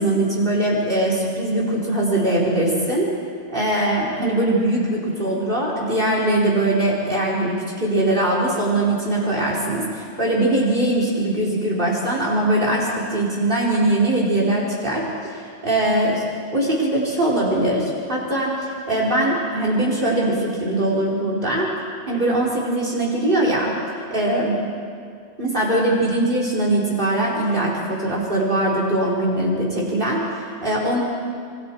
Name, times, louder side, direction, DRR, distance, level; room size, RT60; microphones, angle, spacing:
voice 1, 0.0-3.1 3.5-16.2 16.5-21.7 22.1-23.7 24.1-24.5 25.4-31.0, right 1 dB, 45° right, -4 dB, 4.1 m, -21 dB
26.5 x 24.5 x 4.5 m, 2.2 s
omnidirectional pair, 1.2 m